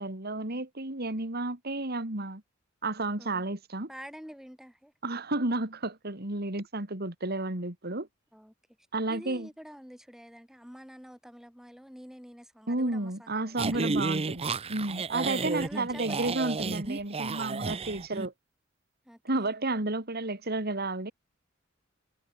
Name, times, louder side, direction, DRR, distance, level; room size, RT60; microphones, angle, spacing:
voice 1, 0.0-2.4 2.8-3.9 5.0-8.1 8.9-9.5 12.7-18.3 19.2-21.1, right 2 dB, 50° right, 3.1 m, -32 dB
voice 2, 3.9-4.9 8.3-8.5 9.1-14.2 15.2-16.3 19.0-19.5, equal, ahead, 5.0 m, -47 dB
sound 1, 13.6-18.3, right 4 dB, 30° right, 0.6 m, -32 dB
head